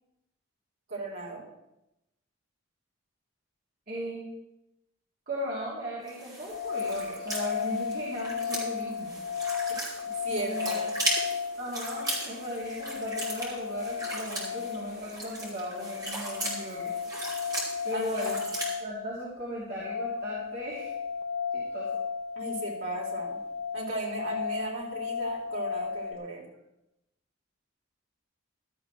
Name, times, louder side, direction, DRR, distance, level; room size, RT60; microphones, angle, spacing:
voice 1, 0.9-1.5 10.1-10.8 17.9-18.2 22.4-23.4 23.7-26.4, right 2 dB, 70° right, -3 dB, 3.9 m, -36 dB
voice 2, 3.9-4.3 5.3-9.2 10.4-10.9 11.6-16.9 17.8-18.4 18.8-20.9 21.5-22.0, equal, 45° right, -6 dB, 2.7 m, -37 dB
sound 1, 6.1-18.7, right 1 dB, 20° right, 3.0 m, -37 dB
sound 2, 6.5-26.1, left 6 dB, 30° left, 0.4 m, -35 dB
15.0 x 12.5 x 3.2 m, 0.89 s
head